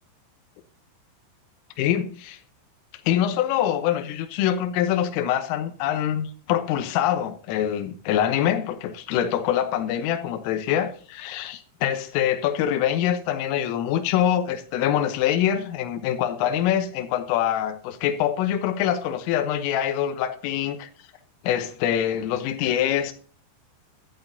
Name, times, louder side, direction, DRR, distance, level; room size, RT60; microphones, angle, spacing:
voice 1, 1.8-2.4 3.1-20.9 21.4-23.1, left 10 dB, 85° left, 3.5 m, -24 dB
15.0 x 12.0 x 2.7 m
omnidirectional pair, 5.7 m